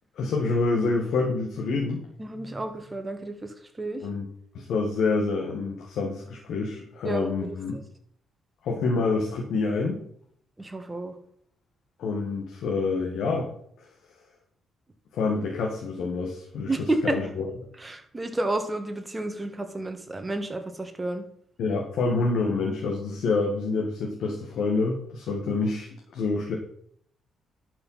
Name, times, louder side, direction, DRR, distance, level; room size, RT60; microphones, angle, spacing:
voice 1, 0.2-2.0 4.0-4.3 4.5-7.8 8.6-10.0 12.0-13.5 15.1-17.5 21.6-26.5, left 3 dB, 75° left, 0 dB, 2.0 m, -27 dB
voice 2, 2.2-4.0 7.0-7.8 10.6-11.1 16.7-17.2 17.8-21.2, right 2 dB, 20° right, 6 dB, 1.8 m, -31 dB
11.0 x 5.9 x 5.8 m, 0.66 s
cardioid pair, 90°, 0 cm